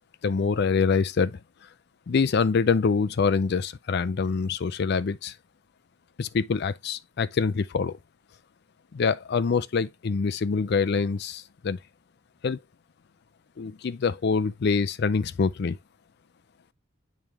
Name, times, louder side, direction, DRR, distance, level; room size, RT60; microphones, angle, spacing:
voice 1, 0.2-1.4 2.1-5.3 6.2-8.0 8.9-11.8 12.4-12.6 13.6-15.8, left 5 dB, 50° left, 0.4 m, -25 dB
8.8 x 3.2 x 3.4 m
head